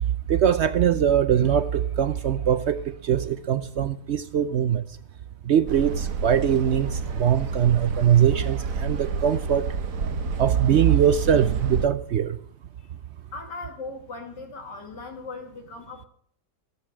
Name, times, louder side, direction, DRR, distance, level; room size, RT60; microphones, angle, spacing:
voice 1, 0.3-4.8 5.5-9.7 10.4-12.4, right 9 dB, 70° right, 12 dB, 0.6 m, -22 dB
sound 1, 5.7-11.9, right 5 dB, 55° right, 1.3 m, -30 dB
voice 2, 13.3-16.1, left 3 dB, 75° left, 4 dB, 2.9 m, -38 dB
14.5 x 7.3 x 8.7 m, 0.64 s
omnidirectional pair, 1.9 m